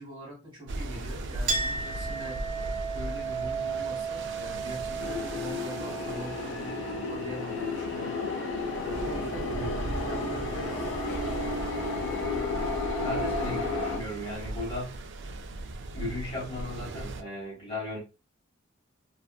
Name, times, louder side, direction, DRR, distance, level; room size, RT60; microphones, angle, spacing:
voice 1, 0.0-2.4 2.9-8.2 8.8-10.7, equal, 25° right, 1.4 m, -43 dB
sound 1, 0.7-17.2, right 2 dB, 65° right, 0.4 m, -38 dB
Chink clink, 1.5-8.5, right 4 dB, 45° right, 1.0 m, -35 dB
sound 2, 5.0-14.0, left 3 dB, 70° left, 0.6 m, -32 dB
voice 2, 13.0-15.0 15.9-18.0, left 1 dB, 30° left, 1.4 m, -35 dB
2.5 x 2.4 x 2.2 m
head